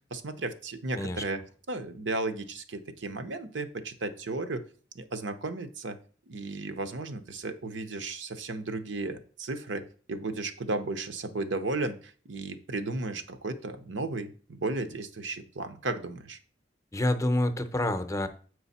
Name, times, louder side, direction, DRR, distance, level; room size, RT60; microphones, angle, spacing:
voice 1, 0.1-1.4 1.7-4.6 4.9-6.0 6.3-16.4, right 2 dB, 80° right, 9 dB, 0.8 m, -34 dB
voice 2, 16.9-18.3, left 1 dB, 15° left, 9 dB, 0.6 m, -27 dB
7.9 x 4.8 x 4.1 m, 0.42 s
head